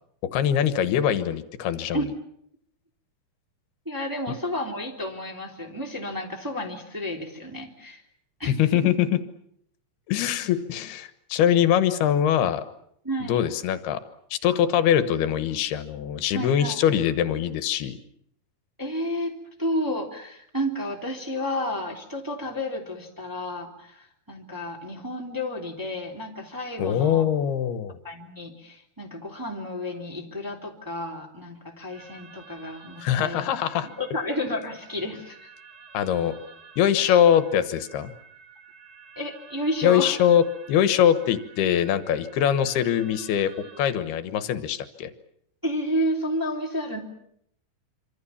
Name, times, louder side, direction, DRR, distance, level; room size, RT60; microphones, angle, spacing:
voice 1, 0.3-2.1 8.5-9.2 10.1-12.6 13.3-14.0 14.3-18.0 26.8-28.0 33.0-33.9 35.9-36.3 36.8-38.1 39.8-45.1, left 9 dB, 85° left, 11 dB, 3.3 m, -23 dB
voice 2, 3.8-8.0 8.4-8.5 13.0-13.4 14.5-14.6 16.3-16.8 18.8-19.3 19.6-27.2 28.0-35.5 37.0-37.2 39.1-40.1 45.6-47.0, left 1 dB, 5° right, 1 dB, 2.5 m, -31 dB
sound 1, 31.9-43.9, right 5 dB, 25° right, 4.1 m, -50 dB
26.5 x 26.0 x 7.2 m, 0.72 s
omnidirectional pair, 4.4 m